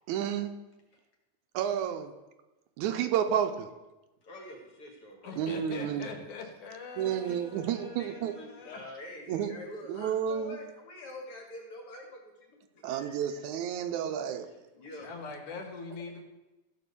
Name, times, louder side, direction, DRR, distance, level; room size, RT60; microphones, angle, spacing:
voice 1, 0.1-0.5 1.5-2.1 2.8-3.7 5.4-6.1 7.0-8.4 9.3-9.6 9.9-10.6 12.8-14.5, right 9 dB, 80° right, 7 dB, 2.1 m, -31 dB
voice 2, 4.2-5.4 7.2-7.4 8.0-13.4 14.7-15.1, left 1 dB, 50° left, 1 dB, 2.7 m, -46 dB
voice 3, 5.2-8.8 15.0-16.2, left 4 dB, 80° left, 3 dB, 3.0 m, -43 dB
14.5 x 5.4 x 6.8 m, 1.0 s
omnidirectional pair, 3.5 m